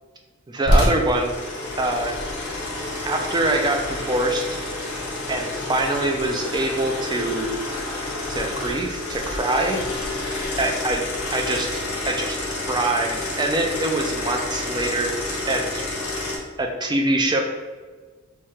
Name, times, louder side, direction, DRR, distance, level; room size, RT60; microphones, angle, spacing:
voice 1, 0.5-1.3 1.8-2.2 3.0-4.6 5.3-7.5 8.3-9.8 10.6-12.4 12.7-15.1 15.5-15.8 16.6-17.4, right 2 dB, 20° right, 3 dB, 0.4 m, -24 dB
sound 1, 0.6-16.4, left 1 dB, 80° left, 1.0 m, -28 dB
3.1 x 2.3 x 4.3 m, 1.4 s
head